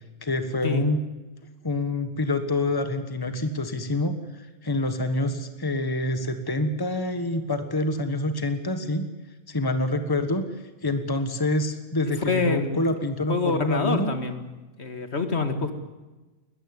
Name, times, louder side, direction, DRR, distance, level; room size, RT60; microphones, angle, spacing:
voice 1, 0.2-1.0 1.6-9.1 9.5-10.5 10.8-14.1, left 2 dB, 20° left, 9 dB, 1.5 m, -26 dB
voice 2, 12.3-12.8 13.3-14.5 14.8-15.7, left 3 dB, 60° left, 8 dB, 2.0 m, -26 dB
21.0 x 14.0 x 9.7 m, 1.2 s
omnidirectional pair, 1.2 m